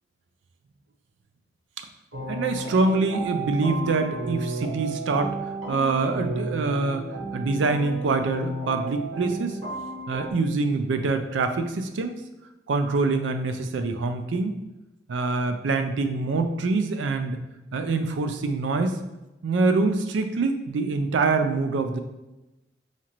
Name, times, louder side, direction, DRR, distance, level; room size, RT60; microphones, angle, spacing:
sound 1, 2.1-10.3, right 2 dB, 85° right, 0.9 m, -33 dB
voice 1, 2.3-5.3 5.7-7.0 7.3-9.6 10.1-12.2 12.7-14.6 15.1-17.4 17.7-19.0 19.4-22.0, right 3 dB, 70° right, 7 dB, 0.4 m, -25 dB
4.2 x 2.4 x 3.0 m, 0.99 s
head